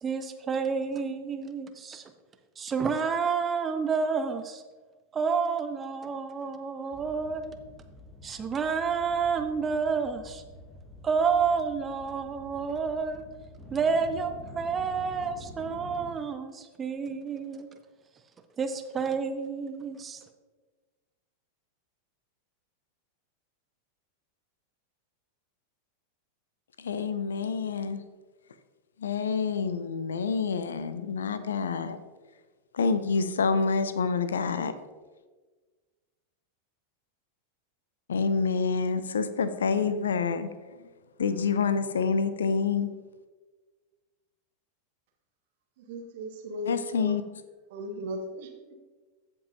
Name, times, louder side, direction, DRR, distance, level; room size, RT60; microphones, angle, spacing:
voice 1, 0.0-2.0 2.6-4.6 5.1-7.6 8.2-10.4 11.0-13.2 13.7-17.7 18.6-20.2, right 5 dB, 20° right, 8 dB, 0.6 m, -29 dB
sound 1, 6.9-16.1, left 1 dB, 10° left, 1.6 m, -48 dB
voice 2, 26.8-28.0 29.0-32.0 32.7-34.7 38.1-40.5 41.2-42.9 46.7-47.2, left 5 dB, 65° left, 13 dB, 0.5 m, -27 dB
voice 3, 45.8-47.2 47.7-48.7, left 1 dB, 50° right, 2 dB, 1.3 m, -37 dB
14.5 x 5.4 x 2.7 m, 1.3 s
figure-of-eight pair, 90°, 0 cm